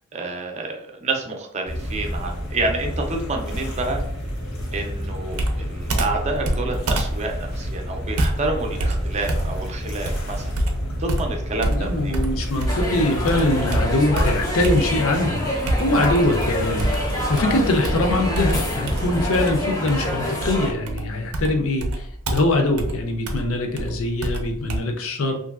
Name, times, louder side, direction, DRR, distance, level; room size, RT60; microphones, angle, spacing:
voice 1, 0.1-4.0 4.7-10.4 11.0-12.2, right 2 dB, 30° right, 3 dB, 0.5 m, -28 dB
sound 1, 1.7-19.3, equal, 80° left, 1.0 m, -30 dB
Computer keyboard, 5.4-13.0 13.3-15.2 15.7-16.4 16.8-24.8, right 1 dB, 80° right, 0.5 m, -26 dB
voice 2, 11.6-25.4, left 2 dB, 65° left, 3 dB, 0.5 m, -23 dB
sound 2, 12.7-20.7, left 1 dB, 15° left, 0.6 m, -27 dB
3.0 x 2.5 x 2.3 m, 0.72 s
head